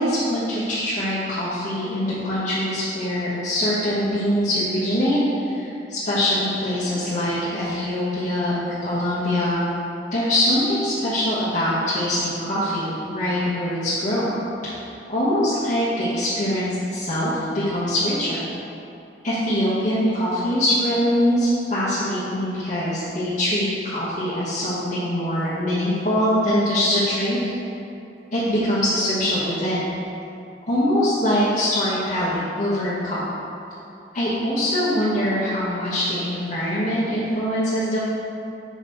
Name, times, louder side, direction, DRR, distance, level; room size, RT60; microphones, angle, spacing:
voice 1, 0.0-5.2 5.5-9.7 10.1-14.4 14.6-14.8 15.1-18.4 19.2-27.4 28.3-29.8 30.7-33.2 34.1-38.0, equal, 45° left, -13 dB, 1.3 m, -23 dB
6.0 x 4.0 x 4.1 m, 2.7 s
head